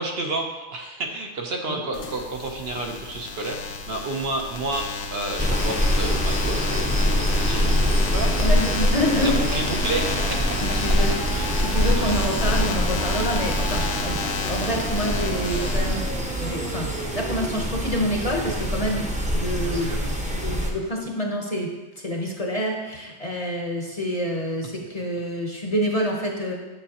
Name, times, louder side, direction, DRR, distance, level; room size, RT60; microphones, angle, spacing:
voice 1, 0.0-8.3 9.2-10.6 11.3-11.5 11.9-12.1 19.6-20.0, right 2 dB, 60° right, 2 dB, 1.0 m, -31 dB
sound 1, 1.9-16.5, left 4 dB, 85° left, 1.0 m, -32 dB
sound 2, 5.4-20.7, equal, 10° right, 0.6 m, -24 dB
sound 3, 7.6-17.6, right 3 dB, 45° right, 1.2 m, -36 dB
voice 2, 8.2-9.8 10.6-14.2 14.5-16.0 16.3-19.1 19.3-20.0 20.3-21.7 22.0-26.5, equal, 35° left, 0 dB, 0.8 m, -27 dB
7.2 x 7.2 x 2.8 m, 1.2 s
omnidirectional pair, 1.2 m